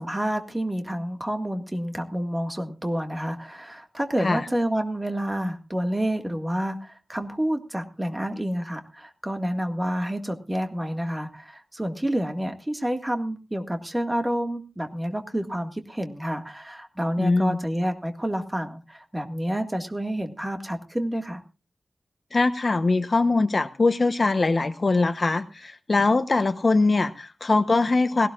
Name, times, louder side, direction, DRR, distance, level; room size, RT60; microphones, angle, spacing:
voice 1, 0.0-21.4, equal, 10° right, 5 dB, 1.9 m, -29 dB
voice 2, 17.2-17.6 22.3-28.3, left 3 dB, 40° left, 9 dB, 1.0 m, -22 dB
19.0 x 17.5 x 2.5 m, 0.31 s
wide cardioid pair, 120°, 0 cm